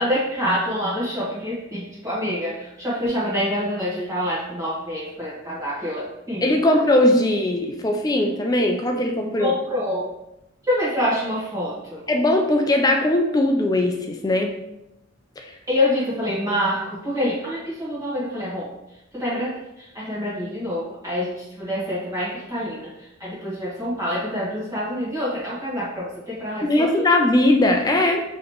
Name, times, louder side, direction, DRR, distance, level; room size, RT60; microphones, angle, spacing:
voice 1, 0.0-6.4 9.4-10.0 10.7-12.0 15.7-18.7 19.1-19.5 19.9-22.9 23.2-27.1, left 1 dB, 15° right, -9 dB, 1.4 m, -26 dB
voice 2, 6.4-9.5 12.1-14.5 15.4-15.5 26.7-28.2, left 1 dB, 20° left, 3 dB, 0.3 m, -19 dB
4.0 x 3.0 x 3.0 m, 0.88 s
head